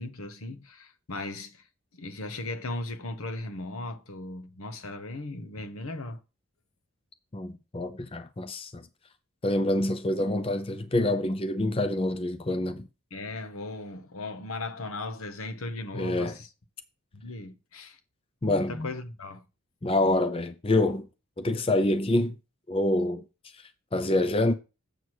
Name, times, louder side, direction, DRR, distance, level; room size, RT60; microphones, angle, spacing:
voice 1, 0.0-1.6 1.9-6.2 13.1-16.5 17.2-18.0 18.5-19.5, left 2 dB, 85° left, 1.2 m, -37 dB
voice 2, 7.3-8.8 9.4-12.9 15.9-16.3 18.4-18.9 19.8-21.1 21.4-22.4 22.7-23.3 23.5-24.5, left 1 dB, 25° left, 0.5 m, -26 dB
8.0 x 6.1 x 4.8 m
head